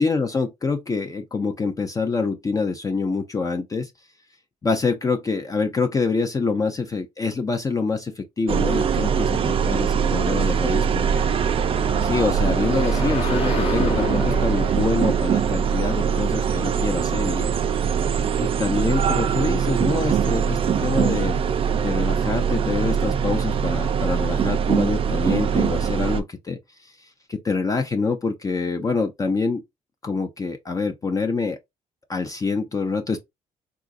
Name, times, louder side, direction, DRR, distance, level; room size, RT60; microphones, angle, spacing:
voice 1, 0.0-3.9 4.6-11.3 12.0-17.5 18.4-21.4 21.7-29.6 30.0-31.6 32.1-33.2, left 4 dB, 25° left, 0.5 m, -26 dB
sound 1, 8.5-26.2, right 7 dB, 40° right, 0.4 m, -22 dB
sound 2, 10.9-17.5, left 3 dB, 40° left, 0.9 m, -31 dB
3.9 x 2.4 x 2.5 m
cardioid pair, 105°, 14 cm